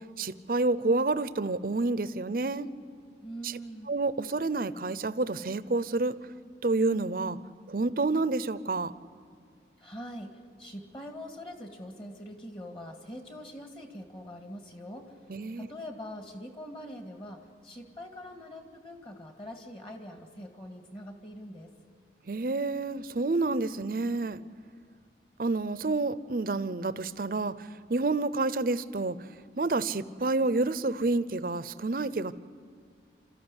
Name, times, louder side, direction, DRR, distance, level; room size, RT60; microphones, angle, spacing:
voice 1, 0.2-2.7 3.4-3.5 3.9-6.1 6.6-7.4 7.7-8.9 15.3-15.7 22.3-24.4 25.4-27.5 27.9-29.2 29.6-32.3, right 3 dB, 50° right, 15 dB, 0.6 m, -29 dB
voice 2, 3.2-3.9 9.8-15.2 15.5-21.7, equal, 30° left, 4 dB, 1.9 m, -43 dB
26.5 x 14.0 x 9.8 m, 2.2 s
head